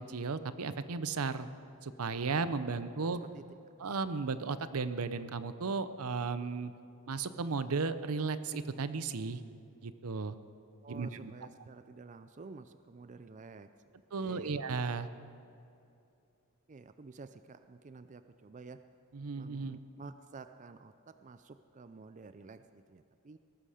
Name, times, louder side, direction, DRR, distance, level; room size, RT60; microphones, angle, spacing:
voice 1, 0.0-1.5 1.8-3.2 3.8-6.7 7.1-9.4 9.8-10.3 10.9-11.3 14.1-15.1 19.1-19.8, right 4 dB, 75° right, 12 dB, 0.7 m, -35 dB
voice 2, 10.8-13.7 14.1-14.6 16.7-18.8 19.3-23.4, right 4 dB, 35° right, 11 dB, 0.4 m, -51 dB
18.5 x 14.0 x 5.0 m, 2.6 s
head